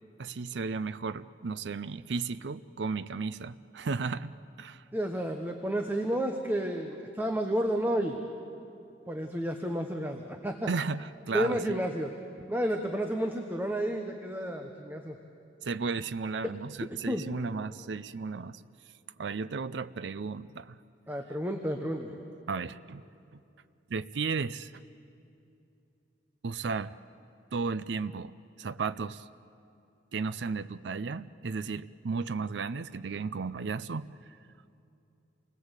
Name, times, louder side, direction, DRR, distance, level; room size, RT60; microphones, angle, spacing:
voice 1, 0.2-4.8 10.7-11.8 15.6-18.6 19.2-20.8 22.5-23.0 23.3-23.4 23.9-24.7 26.4-26.9 27.5-29.3 30.1-34.1, right 4 dB, 75° right, 14 dB, 0.5 m, -34 dB
voice 2, 4.9-8.2 9.1-10.7 11.3-12.1 12.5-15.2 16.4-16.5 17.1-17.3 21.1-22.2, equal, 10° right, 4 dB, 1.1 m, -31 dB
28.0 x 20.0 x 8.2 m, 2.6 s
head